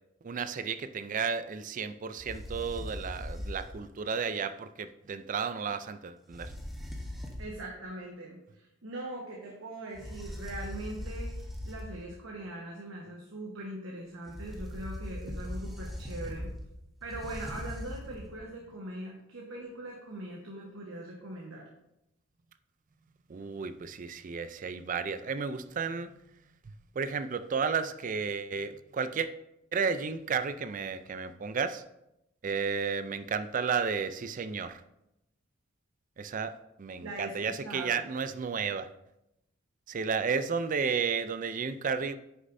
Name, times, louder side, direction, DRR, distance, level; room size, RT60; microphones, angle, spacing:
voice 1, 0.2-6.5 23.3-26.1 27.0-29.3 29.7-31.8 32.4-34.8 36.2-38.9 39.9-42.2, right 5 dB, 40° right, 12 dB, 0.4 m, -32 dB
sound 1, 2.2-3.9 6.3-7.6 9.9-12.1 14.3-18.4, left 1 dB, ahead, 1.0 m, -40 dB
voice 2, 7.4-16.5 17.0-21.7 37.0-38.0, right 1 dB, 85° right, -1 dB, 1.3 m, -41 dB
9.4 x 6.6 x 2.6 m, 0.84 s
head